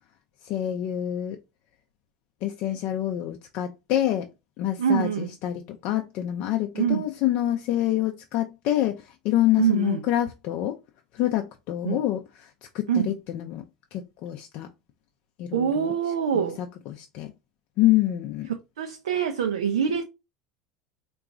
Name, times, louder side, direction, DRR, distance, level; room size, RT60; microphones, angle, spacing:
voice 1, 0.4-1.4 2.4-4.3 4.6-10.8 11.1-13.6 13.9-14.7 15.4-15.9 16.3-16.5 16.9-17.3 17.8-18.5 19.9-20.0, left 13 dB, 55° left, 0.4 m, -27 dB
voice 2, 4.8-5.3 6.8-7.0 9.6-10.0 11.8-12.0 12.9-13.1 15.5-16.6 18.8-20.0, right 8 dB, 80° right, 0.4 m, -24 dB
3.7 x 2.3 x 3.6 m
hypercardioid pair, 75°, 3 cm